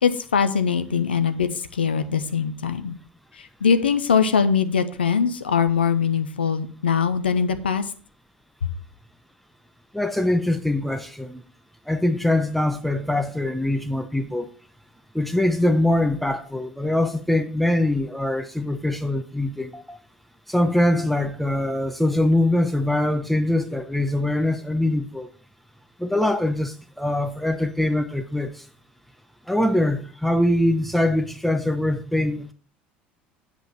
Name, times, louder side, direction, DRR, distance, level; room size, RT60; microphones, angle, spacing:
voice 1, 0.0-2.9 3.4-7.8, left 6 dB, 80° left, 0.8 m, -22 dB
voice 2, 9.9-11.4 11.9-14.5 15.1-20.0 20.5-25.3 26.0-28.6 29.5-32.5, left 1 dB, ahead, 0.9 m, -23 dB
8.4 x 8.0 x 4.2 m
figure-of-eight pair, 65°, 5 cm